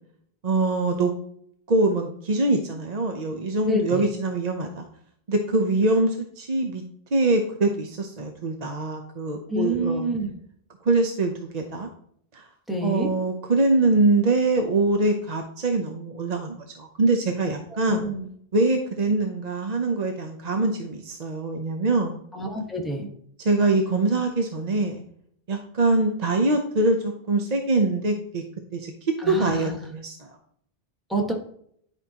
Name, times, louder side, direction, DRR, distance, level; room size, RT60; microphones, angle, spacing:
voice 1, 0.4-1.1 1.7-4.9 5.3-6.8 7.1-10.1 10.8-11.9 12.3-12.5 12.8-18.1 18.5-22.2 23.4-25.0 25.5-28.4 28.7-30.3, right 2 dB, 45° right, 3 dB, 0.8 m, -23 dB
voice 2, 3.6-4.1 9.5-10.3 12.7-13.1 17.7-18.3 22.3-23.1 29.2-29.8 31.1-31.3, right 1 dB, ahead, -1 dB, 1.4 m, -27 dB
10.5 x 5.4 x 2.9 m, 0.66 s
omnidirectional pair, 1.1 m